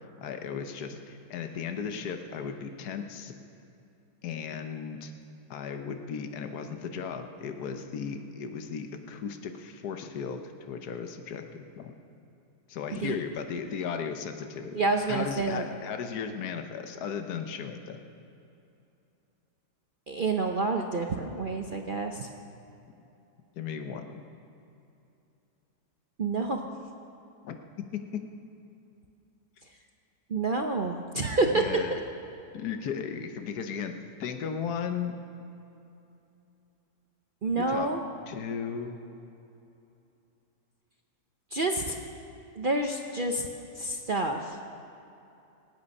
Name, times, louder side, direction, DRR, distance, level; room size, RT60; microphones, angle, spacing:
voice 1, 0.2-3.3 4.2-5.1 5.5-11.9 12.7-14.8 15.1-18.0 23.6-24.2 27.4-28.0 31.5-32.0 32.5-35.2 37.6-37.9 38.3-39.0, left 6 dB, 75° left, 6 dB, 1.4 m, -36 dB
voice 2, 14.7-15.6 20.1-22.3 26.2-26.6 30.3-31.7 37.4-38.0 41.5-42.0 42.6-43.5 43.8-44.6, right 3 dB, 45° right, 3 dB, 0.7 m, -28 dB
25.0 x 8.8 x 5.4 m, 2.8 s
omnidirectional pair, 1.7 m